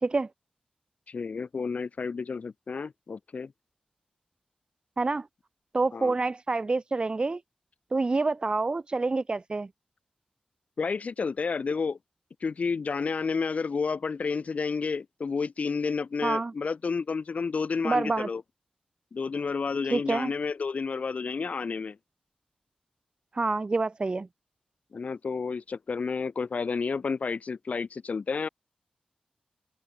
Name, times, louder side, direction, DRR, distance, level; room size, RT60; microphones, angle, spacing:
voice 1, 1.1-3.5 5.9-6.2 10.8-12.0 12.4-18.4 19.1-22.0 24.9-28.5, left 5 dB, 60° left, 7.4 m, -30 dB
voice 2, 5.0-5.3 5.7-7.4 7.9-9.7 16.2-16.5 17.8-18.3 19.9-20.3 23.3-24.3, right 3 dB, 35° right, 2.4 m, -27 dB
wide cardioid pair, 95°, 3 cm